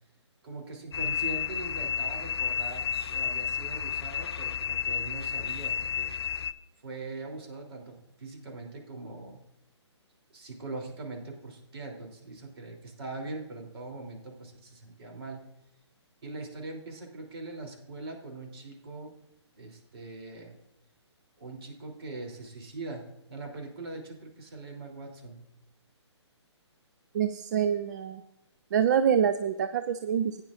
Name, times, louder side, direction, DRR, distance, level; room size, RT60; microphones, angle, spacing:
voice 1, 0.4-6.1 6.8-9.4 10.3-15.4 16.2-19.1 19.6-20.6 21.4-25.5, right 3 dB, 60° right, 1 dB, 3.1 m, -41 dB
sound 1, 0.9-6.5, left 9 dB, 60° left, 0.4 m, -31 dB
voice 2, 27.1-28.2 28.7-30.4, right 8 dB, 40° right, 10 dB, 0.4 m, -26 dB
16.0 x 9.7 x 2.5 m, 0.90 s
hypercardioid pair, 140°, 15 cm